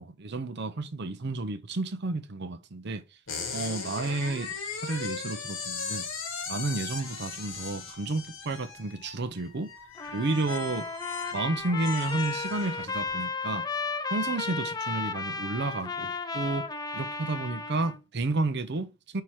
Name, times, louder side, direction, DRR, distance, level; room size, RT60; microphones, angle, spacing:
voice 1, 0.0-3.0 3.5-4.5 4.8-6.1 6.5-9.7 10.1-10.9 11.3-13.6 14.1-16.6 16.9-19.2, right 2 dB, 55° right, 0.7 m, -31 dB
sound 1, 3.3-13.2, left 5 dB, 80° left, 1.7 m, -38 dB
Trumpet, 10.0-18.0, left 4 dB, 20° left, 0.6 m, -34 dB
5.8 x 4.6 x 4.7 m
head